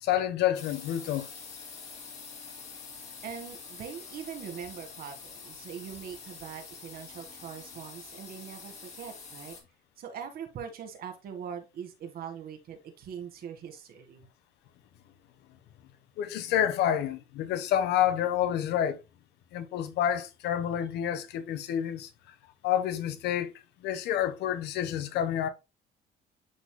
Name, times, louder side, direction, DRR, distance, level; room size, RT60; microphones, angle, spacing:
voice 1, 0.0-1.3 16.2-19.0 19.5-22.1 22.6-25.5, left 10 dB, 80° left, 1.1 m, -28 dB
sound 1, 0.5-9.6, left 5 dB, 45° left, 2.8 m, -46 dB
voice 2, 3.2-9.6 10.0-14.2, right 8 dB, 60° right, 1.9 m, -42 dB
11.0 x 4.3 x 2.2 m
cardioid pair, 110°, 17 cm